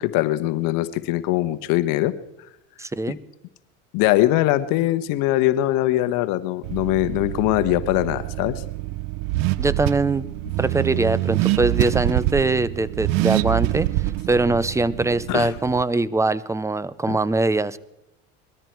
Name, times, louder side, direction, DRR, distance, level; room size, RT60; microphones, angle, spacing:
voice 1, 0.0-2.1 3.9-8.6 15.3-15.5 17.1-17.2, left 15 dB, 65° left, 13 dB, 1.2 m, -21 dB
voice 2, 2.8-3.2 9.6-10.2 10.6-17.8, right 3 dB, 10° right, 18 dB, 0.6 m, -22 dB
Car / Accelerating revving vroom, 6.6-15.8, right 18 dB, 65° right, 0.7 m, -26 dB
20.5 x 13.5 x 4.6 m, 0.87 s
supercardioid pair, 95°, 36 cm